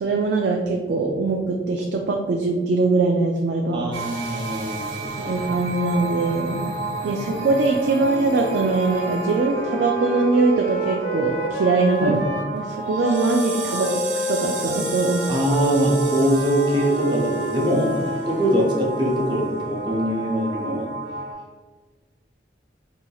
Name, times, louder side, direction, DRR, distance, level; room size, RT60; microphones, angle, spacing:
voice 1, 0.0-3.9 5.2-12.2 12.5-13.9 14.1-15.2, right 3 dB, 70° right, 1 dB, 0.3 m, -22 dB
voice 2, 3.7-4.9 5.2-5.3 12.0-12.1 15.3-20.9, equal, 25° right, -3 dB, 0.7 m, -22 dB
sound 1, 3.9-21.3, right 3 dB, 90° right, 0.8 m, -32 dB
Wind instrument woodwind instrument, 7.1-12.5 13.0-18.9, right 1 dB, 80° left, 0.6 m, -30 dB
4.2 x 2.8 x 2.3 m, 1.4 s
head